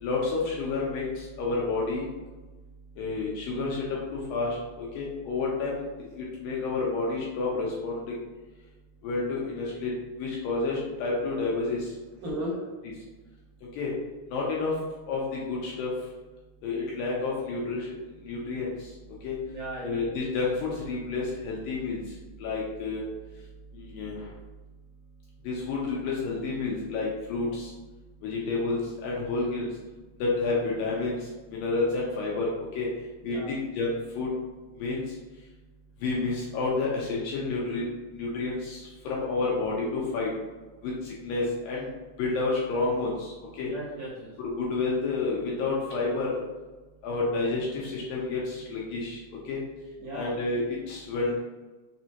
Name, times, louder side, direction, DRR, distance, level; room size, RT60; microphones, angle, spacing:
voice 1, 0.0-2.1 3.0-5.9 6.2-8.2 9.0-11.9 13.8-13.9 14.3-14.7 15.1-15.9 16.6-17.9 18.2-18.7 19.2-19.4 19.8-22.0 22.4-23.0 23.7-24.3 25.4-27.7 28.2-29.7 30.2-32.5 32.8-32.9 33.2-34.3 34.8-35.0 36.0-37.9 38.1-40.3 40.8-41.9 42.2-43.7 44.4-46.4 47.0-49.6 50.1-51.4, left 3 dB, 75° left, -4 dB, 2.2 m, -30 dB
voice 2, 12.2-12.6 19.5-20.0 33.2-33.5 43.6-44.4 50.0-50.4, right 1 dB, 75° right, -6 dB, 2.0 m, -35 dB
6.1 x 2.6 x 2.8 m, 1.2 s
omnidirectional pair, 4.5 m